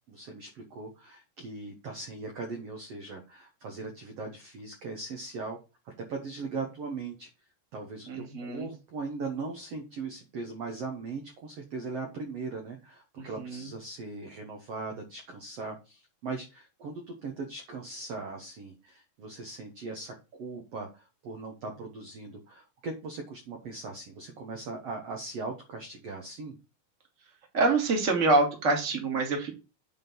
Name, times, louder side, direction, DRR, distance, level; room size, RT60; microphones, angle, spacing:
voice 1, 0.1-5.6 5.9-7.3 7.7-26.6, right 3 dB, 60° right, 2 dB, 1.7 m, -39 dB
voice 2, 8.1-8.7 13.2-13.7 27.5-29.5, right 3 dB, 25° right, 2 dB, 1.8 m, -26 dB
8.9 x 3.8 x 6.1 m, 0.29 s
omnidirectional pair, 4.5 m